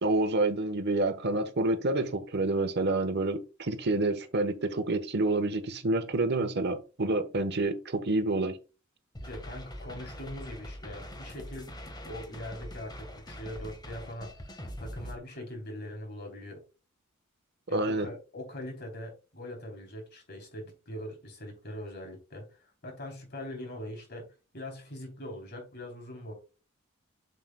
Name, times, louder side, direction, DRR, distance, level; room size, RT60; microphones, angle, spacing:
voice 1, 0.0-8.6 17.7-18.1, right 2 dB, 55° right, 1.1 m, -28 dB
sound 1, 9.1-15.2, equal, 20° left, 1.4 m, -43 dB
voice 2, 9.2-11.7 12.0-14.3 14.8-16.6 17.7-24.3 24.5-26.3, left 1 dB, 50° left, 3.3 m, -42 dB
7.6 x 6.7 x 2.2 m
head